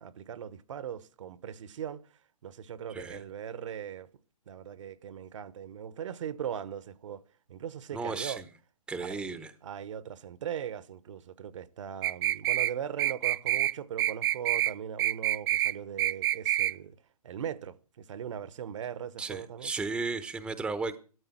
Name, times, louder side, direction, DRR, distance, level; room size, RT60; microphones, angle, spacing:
voice 1, 0.0-2.0 2.4-4.1 4.5-7.2 7.5-8.4 9.0-9.3 9.6-16.9 17.2-19.7, right 9 dB, 55° right, 1.1 m, -39 dB
voice 2, 2.9-3.2 7.9-8.4 8.9-9.5 19.2-21.0, right 4 dB, 5° right, 0.9 m, -34 dB
sound 1, 12.0-12.7 13.0-13.7 14.0-14.7 15.0-15.7 16.0-16.7, right 13 dB, 40° right, 0.6 m, -27 dB
14.0 x 12.5 x 6.0 m
hypercardioid pair, 135°, 19 cm